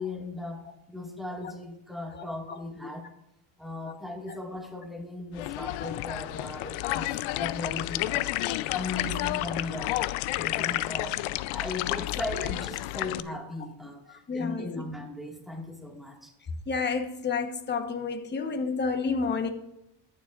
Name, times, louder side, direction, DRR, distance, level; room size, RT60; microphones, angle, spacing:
voice 1, 0.0-3.1 3.6-8.3 8.7-10.0 10.3-11.2 11.5-16.3, left 2 dB, ahead, 1.7 m, -38 dB
sound 1, 5.3-13.2, left 17 dB, 75° left, 0.6 m, -31 dB
voice 2, 14.1-14.8 16.7-19.5, left 5 dB, 20° left, 1.0 m, -30 dB
21.0 x 7.3 x 2.4 m
cardioid pair, 120°, 48 cm